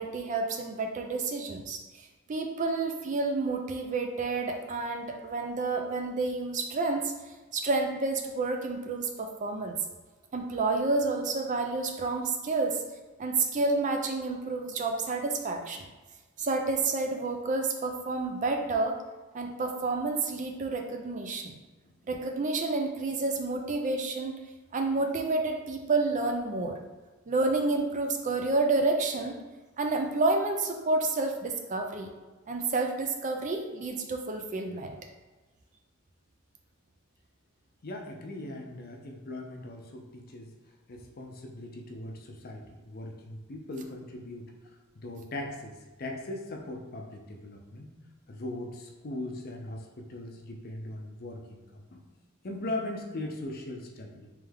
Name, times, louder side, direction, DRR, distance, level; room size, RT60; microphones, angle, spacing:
voice 1, 0.0-7.1 7.5-9.8 10.3-12.8 13.2-15.9 16.4-19.0 19.3-21.5 22.1-24.4 24.7-26.8 27.3-29.4 29.8-32.1 32.5-34.9, right 3 dB, 35° right, 4 dB, 0.4 m, -29 dB
voice 2, 37.8-40.5 40.9-44.5 44.9-47.9 48.3-52.0 52.4-54.3, left 1 dB, 45° left, 2 dB, 0.6 m, -39 dB
3.5 x 3.3 x 3.4 m, 1.2 s
head